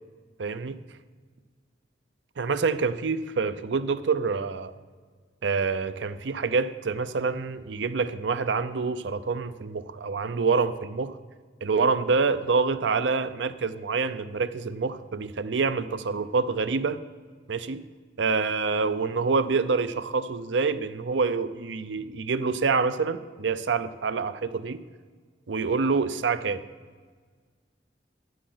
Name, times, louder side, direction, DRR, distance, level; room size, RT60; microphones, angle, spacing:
voice 1, 0.4-0.8 2.4-4.7 5.4-11.2 11.6-17.0 17.5-17.8 18.2-24.8 25.5-26.6, right 4 dB, 90° right, 12 dB, 0.6 m, -26 dB
10.0 x 7.9 x 7.8 m, 1.5 s
head